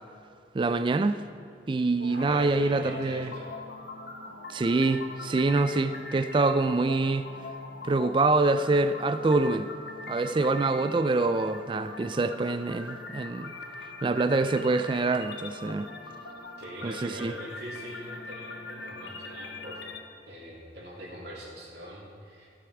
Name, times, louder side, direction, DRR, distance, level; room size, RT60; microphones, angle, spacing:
voice 1, 0.5-1.2 1.7-3.3 4.5-7.3 7.8-9.7 10.1-13.5 14.0-15.9 16.8-17.3, right 3 dB, 25° right, 10 dB, 0.3 m, -25 dB
sound 1, 2.0-20.0, left 3 dB, 75° left, 1.1 m, -42 dB
voice 2, 2.1-3.5 16.6-19.8 20.2-22.5, equal, 65° right, -5 dB, 3.0 m, -42 dB
15.5 x 7.1 x 4.8 m, 2.5 s
head